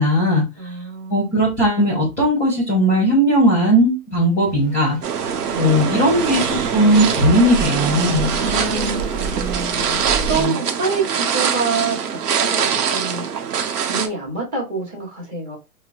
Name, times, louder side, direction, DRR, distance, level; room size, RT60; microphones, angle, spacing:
voice 1, 0.0-0.4 1.1-5.0 5.6-8.3 10.3-10.6, equal, 5° left, -4 dB, 0.8 m, -17 dB
voice 2, 0.6-1.3 5.5-5.7 8.3-9.3 10.3-13.3 13.8-15.6, right 4 dB, 20° right, -5 dB, 1.2 m, -27 dB
sound 1, 4.5-10.4, right 4 dB, 50° right, 0.8 m, -28 dB
sound 2, 5.0-14.1, right 7 dB, 85° right, 0.9 m, -23 dB
4.4 x 2.1 x 2.5 m, 0.25 s
hypercardioid pair, 160°, 46 cm